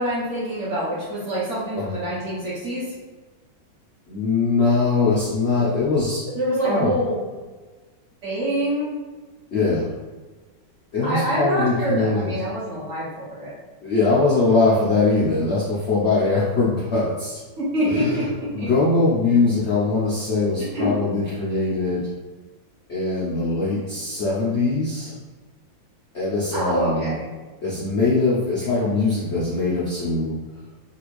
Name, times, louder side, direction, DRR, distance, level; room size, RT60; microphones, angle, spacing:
voice 1, 0.0-2.9 6.3-7.2 8.2-9.0 11.0-13.5 17.6-18.7 20.7-21.0 26.5-27.3, right 1 dB, 50° right, -8 dB, 0.9 m, -25 dB
voice 2, 4.1-6.3 6.6-6.9 9.5-9.9 10.9-12.3 13.8-17.4 17.8-22.1 22.9-25.1 26.1-27.2 27.6-30.4, left 3 dB, 90° left, -7 dB, 0.6 m, -21 dB
3.3 x 2.4 x 3.1 m, 1.3 s
omnidirectional pair, 2.1 m